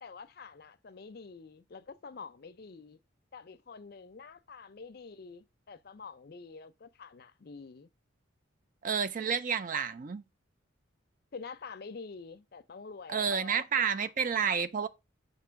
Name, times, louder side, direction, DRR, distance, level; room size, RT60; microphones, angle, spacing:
voice 1, 0.0-3.0 3.3-7.9 11.3-14.5, left 4 dB, 55° left, 0.5 m, -47 dB
voice 2, 8.8-10.2 13.1-14.9, right 7 dB, 45° right, 0.4 m, -30 dB
6.9 x 2.8 x 5.6 m
head